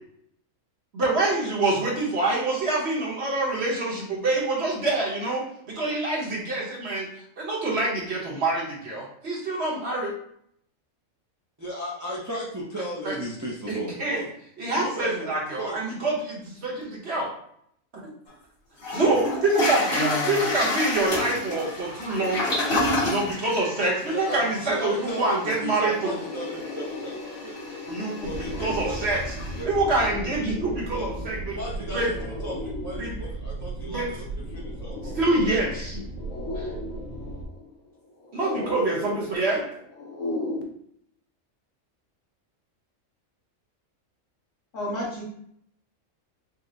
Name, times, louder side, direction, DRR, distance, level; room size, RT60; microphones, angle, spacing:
voice 1, 0.9-7.1 7.4-10.1 13.0-13.1 13.7-14.2 14.6-17.3 18.9-22.4 23.0-26.1 27.9-28.1 28.6-29.2 29.6-31.6 31.9-32.1 33.0-33.1 33.9-34.0 35.2-36.0 36.6-36.7 38.3-39.6, right 2 dB, 55° right, -3 dB, 1.2 m, -26 dB
voice 2, 11.6-14.3 14.7-15.8 24.0-27.8 28.2-29.2 29.6-29.7 30.9-31.1 31.5-32.1 32.4-35.2, equal, 25° right, -6 dB, 0.3 m, -35 dB
Toilet flush, 18.3-18.4 18.8-29.6, left 2 dB, 45° left, 1.4 m, -31 dB
voice 3, 19.9-20.4 44.7-45.2, left 1 dB, 60° left, -5 dB, 1.6 m, -30 dB
sound 1, 24.6-40.6, left 2 dB, 80° left, 1.0 m, -37 dB
sound 2, 28.2-37.4, right 2 dB, 80° right, 1.0 m, -36 dB
4.2 x 2.1 x 3.8 m, 0.69 s
omnidirectional pair, 1.4 m